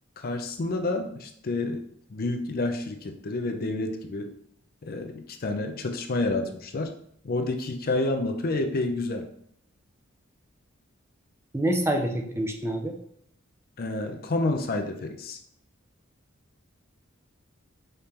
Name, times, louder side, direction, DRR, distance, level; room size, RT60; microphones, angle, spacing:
voice 1, 0.2-1.8 2.1-4.3 4.8-6.9 7.2-9.3 13.8-15.4, left 2 dB, 45° left, 6 dB, 0.5 m, -29 dB
voice 2, 11.5-12.9, right 1 dB, 10° right, 3 dB, 0.4 m, -26 dB
5.1 x 3.3 x 2.9 m, 0.68 s
head